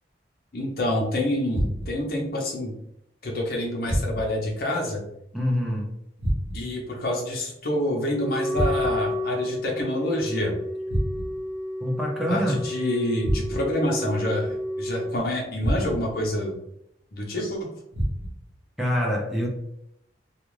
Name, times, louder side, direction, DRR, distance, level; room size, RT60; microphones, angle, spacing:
voice 1, 0.5-2.7 3.2-5.0 6.5-10.5 12.3-16.5 17.1-17.7, left 1 dB, 55° left, -1 dB, 0.7 m, -27 dB
sound 1, 1.5-2.1 3.8-4.5 6.2-6.8 8.5-9.2 10.9-11.5 13.2-13.8 15.6-16.2 17.9-18.5, equal, 80° right, 0.7 m, -28 dB
voice 2, 5.3-5.9 11.8-12.6 18.8-19.5, equal, ahead, -3 dB, 0.5 m, -25 dB
Wind instrument woodwind instrument, 8.1-15.2, left 1 dB, 90° left, 0.4 m, -31 dB
2.4 x 2.4 x 3.1 m, 0.77 s
head